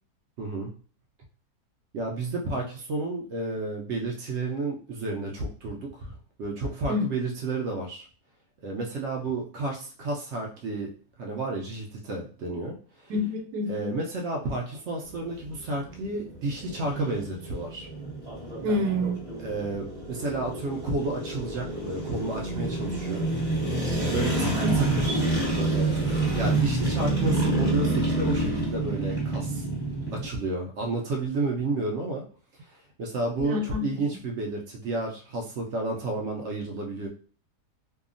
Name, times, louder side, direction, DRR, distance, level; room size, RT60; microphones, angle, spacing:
voice 1, 0.4-0.7 1.9-8.1 8.6-10.9 11.2-13.1 13.7-17.9 19.4-23.3 24.1-25.3 25.6-25.9 26.4-29.7 30.1-32.2 32.7-37.1, right 2 dB, 75° right, 0 dB, 0.6 m, -31 dB
voice 2, 13.1-13.9 18.6-19.2 33.4-34.1, left 1 dB, 90° right, 4 dB, 1.2 m, -28 dB
sound 1, 15.1-30.3, right 2 dB, 5° left, 1.1 m, -28 dB
2.7 x 2.3 x 2.5 m, 0.41 s
omnidirectional pair, 1.7 m